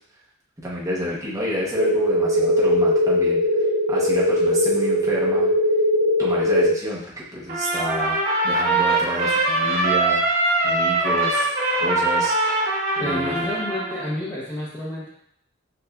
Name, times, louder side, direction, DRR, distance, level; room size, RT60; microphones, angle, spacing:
voice 1, 0.6-3.4 3.9-5.5 6.2-10.2 10.6-12.4 13.0-13.5, equal, 15° right, -6 dB, 0.8 m, -29 dB
sound 1, 1.7-6.7, left 1 dB, 85° right, 1.0 m, -20 dB
Trumpet, 7.5-14.1, right 2 dB, 45° right, 0.9 m, -22 dB
voice 2, 13.0-15.1, left 1 dB, 20° left, -8 dB, 0.7 m, -30 dB
6.5 x 2.4 x 2.2 m, 0.71 s
head